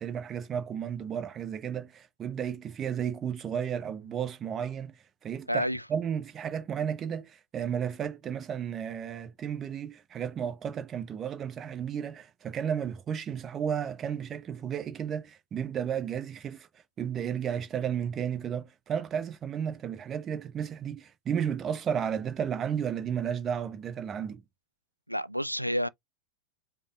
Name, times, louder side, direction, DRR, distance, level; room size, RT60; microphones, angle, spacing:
voice 1, 0.0-4.9 5.2-16.7 17.0-24.4, right 8 dB, 25° right, 0.8 m, -33 dB
voice 2, 5.5-5.8 25.1-25.9, equal, 90° right, 0.3 m, -29 dB
5.2 x 2.3 x 3.8 m
figure-of-eight pair, 90°, 0 cm